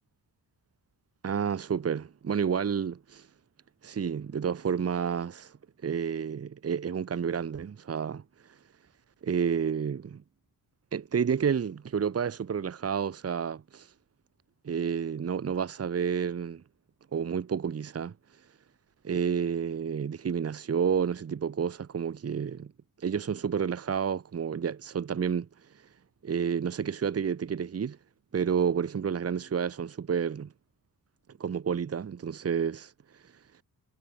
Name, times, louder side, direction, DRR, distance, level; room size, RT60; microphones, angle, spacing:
voice 1, 1.2-3.3 3.8-5.5 5.8-8.2 9.2-10.2 10.9-13.9 14.6-16.6 17.1-18.1 19.0-22.7 23.0-25.5 26.2-28.0 28.3-30.5 31.4-32.9, right 7 dB, 40° right, 1.7 m, -30 dB
wide cardioid pair, 170°, 38 cm